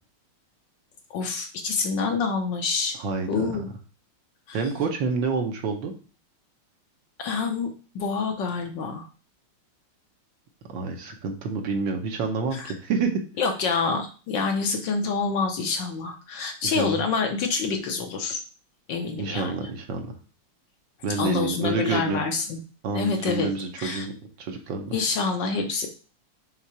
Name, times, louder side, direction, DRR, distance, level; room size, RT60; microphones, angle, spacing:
voice 1, 1.1-3.0 3.3-3.7 4.5-4.6 7.2-7.7 7.9-9.1 12.5-12.7 13.4-18.4 18.9-19.7 21.2-22.6 22.9-23.5 23.8-24.1 24.9-25.9, left 4 dB, 65° left, 4 dB, 1.3 m, -27 dB
voice 2, 3.0-3.5 4.5-5.9 10.7-13.2 16.6-17.0 19.2-20.1 21.0-22.2 22.8-25.0, right 4 dB, 65° right, 4 dB, 1.5 m, -28 dB
5.8 x 3.7 x 4.7 m, 0.37 s
omnidirectional pair, 2.4 m